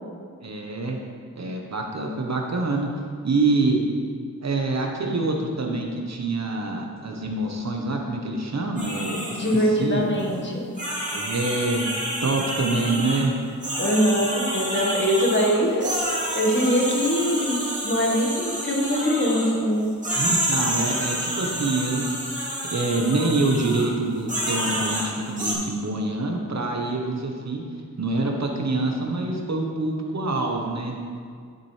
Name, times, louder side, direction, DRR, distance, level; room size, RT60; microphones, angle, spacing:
voice 1, 0.4-1.0 1.3-2.9 3.2-3.8 4.4-10.0 11.1-11.9 12.2-13.3 20.1-22.1 22.7-27.6 28.0-31.0, right 2 dB, 50° right, 1 dB, 1.0 m, -26 dB
scream man, 8.8-9.7 10.2-10.3 10.8-13.2 13.6-19.6 20.0-23.9 24.3-25.5, right 1 dB, 20° right, 2.5 m, -29 dB
voice 2, 9.3-10.7 13.8-16.0 16.3-19.9, equal, 30° left, -1 dB, 1.4 m, -23 dB
12.0 x 7.4 x 3.3 m, 2.1 s
wide cardioid pair, 125°, 35 cm